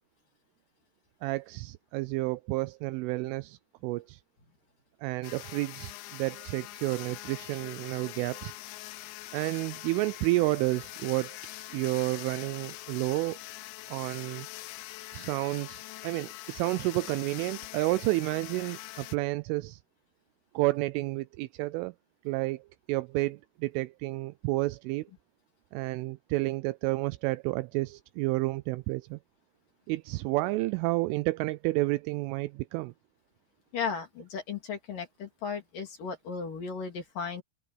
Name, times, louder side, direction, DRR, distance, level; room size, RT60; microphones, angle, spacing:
voice 1, 1.2-4.2 5.0-8.5 9.3-11.4 11.7-13.4 13.9-14.5 15.1-19.8 20.5-21.9 22.3-22.6 22.9-25.1 25.7-29.2 29.9-32.9, right 21 dB, 85° right, 2.9 m, -30 dB
sound 1, 5.2-19.2, left 17 dB, 80° left, 2.7 m, -43 dB
voice 2, 33.7-37.4, left 5 dB, 45° left, 3.8 m, -35 dB
omnidirectional pair, 5.9 m